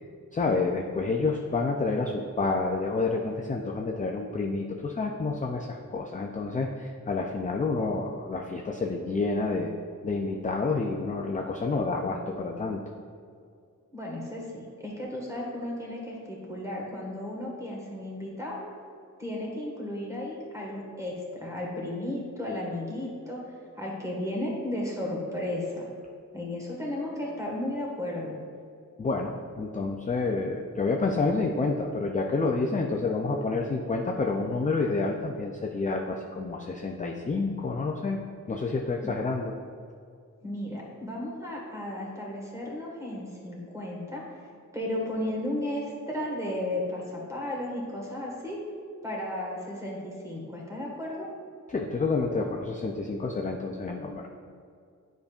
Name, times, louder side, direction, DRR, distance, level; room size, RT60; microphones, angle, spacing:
voice 1, 0.3-9.7 10.0-12.8 29.0-38.2 38.5-39.5 51.7-54.3, left 3 dB, 25° left, 1 dB, 0.4 m, -29 dB
voice 2, 13.9-18.6 19.2-25.9 26.3-28.4 39.0-39.1 40.4-44.5 44.7-48.6 49.0-51.3, left 1 dB, 10° right, -3 dB, 1.4 m, -34 dB
9.3 x 5.1 x 2.4 m, 2.3 s
wide cardioid pair, 135°, 31 cm